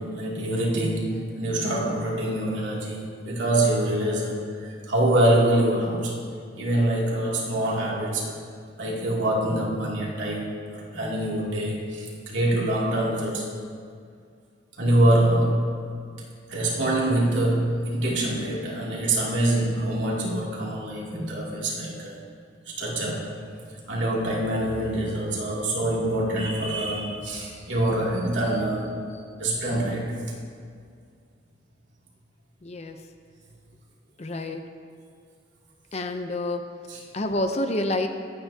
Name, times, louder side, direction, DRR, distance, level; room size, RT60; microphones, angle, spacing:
voice 1, 0.0-6.3 6.6-8.4 8.8-13.5 14.8-15.6 16.5-22.2 22.7-23.3 23.9-30.2 36.9-37.0, right 1 dB, 70° right, -4 dB, 2.6 m, -25 dB
voice 2, 32.6-33.1 34.2-34.6 35.9-36.7 37.1-38.1, left 1 dB, 35° left, 6 dB, 0.7 m, -28 dB
24.0 x 9.2 x 2.8 m, 2.2 s
head